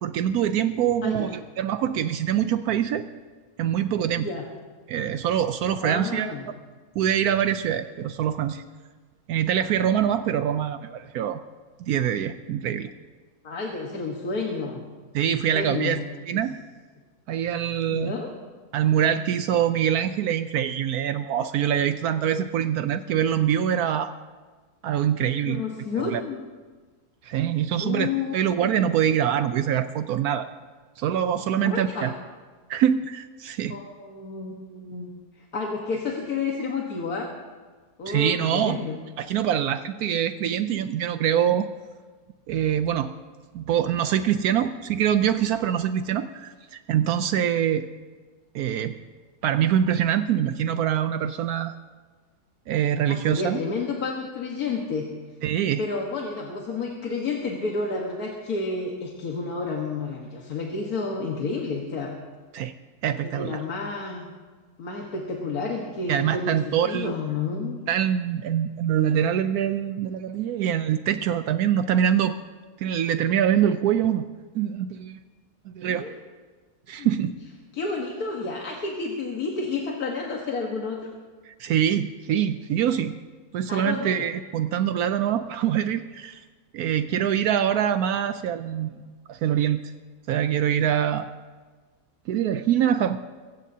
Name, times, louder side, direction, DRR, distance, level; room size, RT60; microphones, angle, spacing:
voice 1, 0.0-3.1 3.6-4.3 4.9-6.3 7.0-8.6 9.3-11.4 11.8-12.9 15.1-16.0 16.3-16.6 17.3-18.1 18.7-24.1 24.8-25.6 26.0-26.2 27.2-30.5 31.0-32.1 32.7-33.8 38.1-38.8 39.2-41.7 42.5-43.1 43.5-47.9 48.5-49.0 49.4-51.7 52.7-53.6 55.4-55.8 62.5-62.7 63.0-63.6 66.1-67.1 67.9-72.4 72.8-74.3 74.5-75.2 75.7-76.1 76.9-77.3 81.5-83.2 83.5-86.4 86.7-89.0 89.3-89.8 90.3-91.3 92.3-93.2, right 9 dB, 75° right, 10 dB, 1.1 m, -24 dB
voice 2, 1.0-1.3 4.2-4.5 5.8-6.5 13.4-14.8 15.2-16.0 16.3-16.4 17.9-18.3 25.5-26.4 27.8-28.4 28.7-28.8 31.5-32.2 33.7-35.1 35.3-37.3 38.0-39.0 53.1-55.1 55.8-62.2 63.2-64.3 64.8-67.8 75.8-76.1 77.0-77.1 77.7-81.1 83.7-84.2, left 4 dB, 70° left, 0 dB, 1.9 m, -30 dB
23.0 x 15.5 x 2.8 m, 1.4 s
omnidirectional pair, 1.6 m